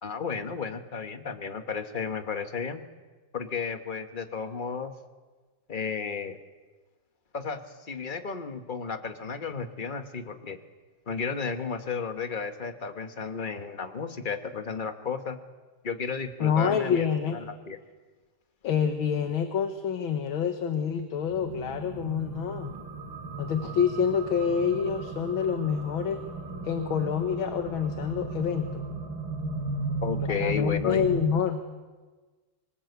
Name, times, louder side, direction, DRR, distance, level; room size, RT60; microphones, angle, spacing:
voice 1, 0.0-2.8 3.3-4.9 5.7-6.4 7.3-10.6 11.1-15.4 15.8-17.1 17.3-17.8 30.0-31.1, left 5 dB, 30° left, 8 dB, 1.2 m, -33 dB
voice 2, 16.4-17.4 18.6-22.7 23.4-26.2 26.6-28.9 30.3-31.6, left 7 dB, 70° left, 7 dB, 2.0 m, -27 dB
sound 1, 21.2-31.2, right 2 dB, 70° right, 5.2 m, -36 dB
26.0 x 19.5 x 8.2 m, 1.3 s
omnidirectional pair, 2.3 m